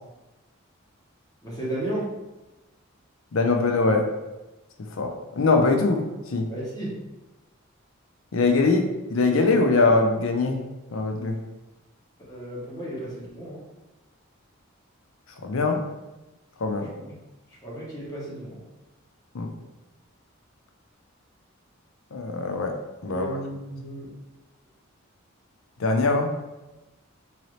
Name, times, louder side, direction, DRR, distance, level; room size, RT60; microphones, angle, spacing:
voice 1, 1.4-2.1 6.5-6.9 12.3-13.6 16.9-17.1 17.6-18.6 23.1-24.1, right 1 dB, 20° left, -7 dB, 1.2 m, -34 dB
voice 2, 3.3-4.0 5.0-6.0 6.3-6.5 8.3-10.6 10.9-11.3 15.4-15.8 16.6-16.9 19.3-19.5 22.1-22.7 23.0-23.3 25.8-26.3, left 3 dB, 75° left, 3 dB, 0.6 m, -22 dB
3.8 x 2.8 x 3.2 m, 1.1 s
head